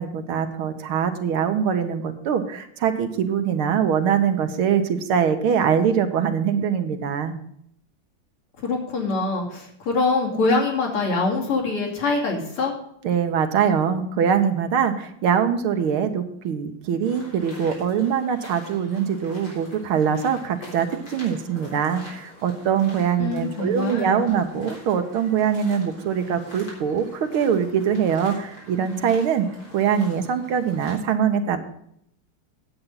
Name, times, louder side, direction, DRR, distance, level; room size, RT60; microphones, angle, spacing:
voice 1, 0.0-7.3 13.0-29.5 29.7-31.6, right 7 dB, 80° right, 7 dB, 1.9 m, -23 dB
voice 2, 8.6-12.7 23.2-24.2, left 3 dB, 85° left, -1 dB, 3.5 m, -24 dB
sound 1, 17.0-31.0, equal, 45° left, 4.2 m, -45 dB
9.5 x 8.2 x 5.6 m, 0.70 s
omnidirectional pair, 2.4 m